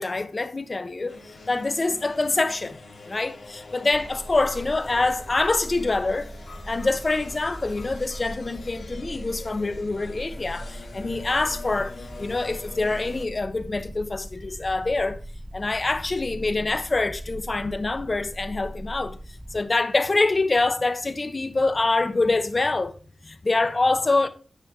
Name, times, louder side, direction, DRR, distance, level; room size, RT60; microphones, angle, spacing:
voice 1, 0.0-2.8 3.0-6.3 6.7-15.2 15.5-19.2 19.5-22.9 23.2-24.3, left 3 dB, 40° left, 0.9 m, -25 dB
sound 1, 1.1-13.2, left 3 dB, 85° left, 1.8 m, -44 dB
sound 2, 3.9-19.6, right 1 dB, 5° right, 0.5 m, -40 dB
9.3 x 6.4 x 3.6 m
wide cardioid pair, 100°, 0 cm